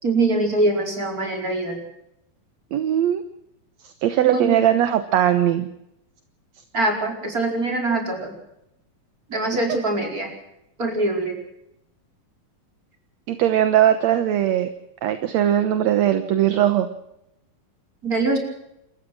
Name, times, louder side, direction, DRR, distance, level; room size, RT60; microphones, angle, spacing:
voice 1, 0.0-1.8 4.3-4.5 6.7-8.3 9.3-10.3 10.8-11.4 18.0-18.4, right 2 dB, 25° right, 2 dB, 5.0 m, -23 dB
voice 2, 2.7-3.2 3.8-5.7 13.3-14.7 15.0-16.9, right 11 dB, 65° right, 10 dB, 2.0 m, -19 dB
29.0 x 14.5 x 6.2 m, 0.82 s
omnidirectional pair, 4.0 m